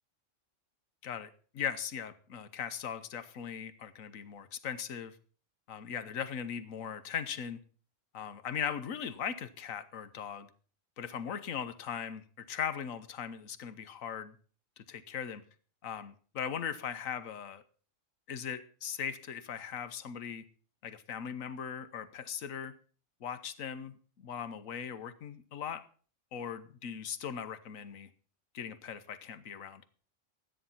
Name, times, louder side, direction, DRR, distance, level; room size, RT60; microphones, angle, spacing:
voice 1, 1.0-5.2 5.7-7.6 8.1-10.5 11.0-14.3 14.8-15.4 15.8-17.6 18.3-20.4 20.8-22.8 23.2-25.8 26.3-28.1 28.5-29.8, left 8 dB, 85° left, 12 dB, 1.4 m, -39 dB
13.5 x 9.3 x 5.7 m, 0.42 s
omnidirectional pair, 1.3 m